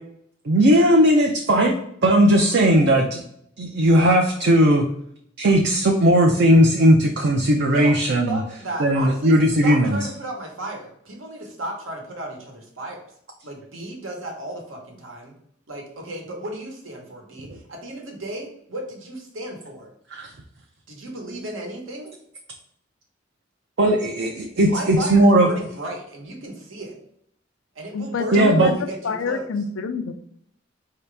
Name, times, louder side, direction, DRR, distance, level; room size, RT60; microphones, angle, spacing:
voice 1, 0.5-3.2 3.6-4.9 5.4-8.4 8.8-10.0 20.1-20.3 23.8-25.5 28.3-28.7, right 1 dB, 60° right, 1 dB, 0.5 m, -17 dB
voice 2, 7.7-8.0 8.3-13.0 13.4-15.3 15.7-19.9 20.9-22.1 24.6-26.9 27.7-29.5, right 1 dB, 85° right, 1 dB, 1.2 m, -34 dB
voice 3, 27.9-30.1, left 5 dB, 85° left, 10 dB, 0.4 m, -27 dB
4.7 x 2.8 x 3.3 m, 0.70 s
head